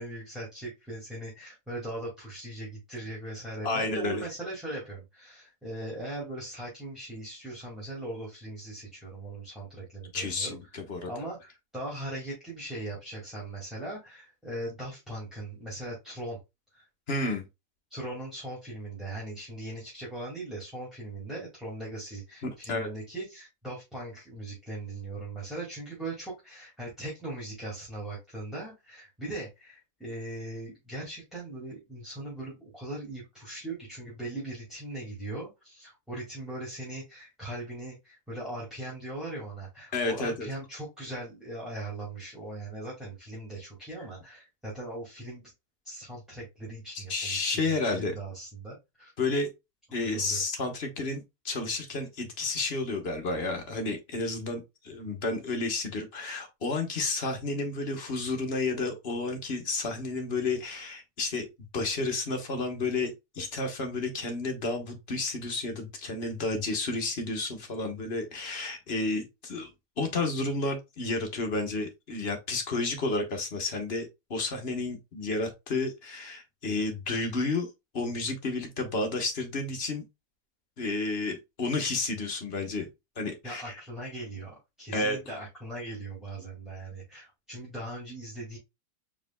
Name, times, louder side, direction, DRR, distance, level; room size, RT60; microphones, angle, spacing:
voice 1, 0.0-10.6 11.1-16.4 16.7-16.9 17.9-45.5 45.8-49.1 50.0-50.4 83.4-88.6, right 1 dB, ahead, 2.0 m, -39 dB
voice 2, 3.6-4.2 10.1-11.1 17.1-17.4 22.4-22.9 39.9-40.5 46.9-48.1 49.2-49.5 49.9-69.7 70.0-77.7 77.9-80.0 80.8-82.9 83.2-83.8 84.9-85.2, left 3 dB, 45° left, 1.2 m, -31 dB
4.8 x 3.8 x 2.2 m
omnidirectional pair, 1.7 m